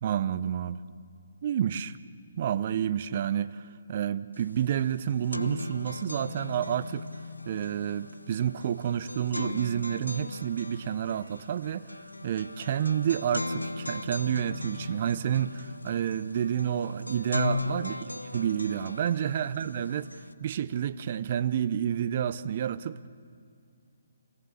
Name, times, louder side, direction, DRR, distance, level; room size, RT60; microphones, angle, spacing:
voice 1, 0.0-0.8 1.4-2.0 2.4-3.6 3.9-7.1 7.5-11.9 12.2-20.1 20.4-23.1, right 9 dB, 40° right, 14 dB, 0.8 m, -29 dB
sound 1, 4.4-4.5 4.8-20.3, left 2 dB, 85° left, 1.0 m, -37 dB
27.0 x 18.5 x 8.3 m, 2.4 s
figure-of-eight pair, 135°, 0 cm